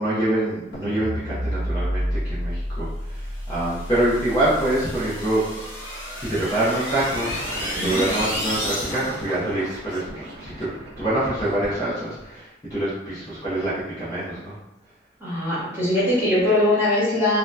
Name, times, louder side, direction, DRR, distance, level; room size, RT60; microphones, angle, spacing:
voice 1, 0.0-5.4 6.2-10.1 10.4-10.7 11.0-14.6, right 1 dB, 20° left, -11 dB, 0.6 m, -25 dB
sound 1, 0.7-7.0, equal, 70° left, 0.7 m, -30 dB
sound 2, 3.4-9.3, equal, 50° left, 1.2 m, -32 dB
sound 3, 6.9-12.4, right 1 dB, 65° right, 0.5 m, -36 dB
voice 2, 15.2-17.4, left 1 dB, 15° right, -11 dB, 1.1 m, -21 dB
2.6 x 2.1 x 2.2 m, 0.95 s
head